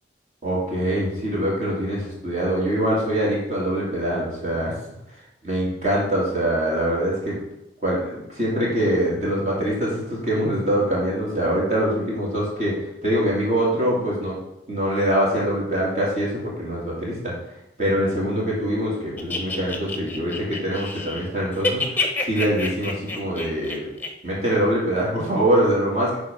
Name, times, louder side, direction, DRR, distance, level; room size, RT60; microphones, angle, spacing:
voice 1, 0.4-4.7 5.4-7.4 7.8-14.4 14.7-17.3 17.8-21.8 22.2-23.9 24.2-26.2, right 1 dB, 40° right, -5 dB, 3.1 m, -23 dB
sound 1, 19.2-21.3 21.5-24.1, left 3 dB, 10° left, 1.0 m, -27 dB
11.5 x 4.2 x 5.6 m, 0.88 s
head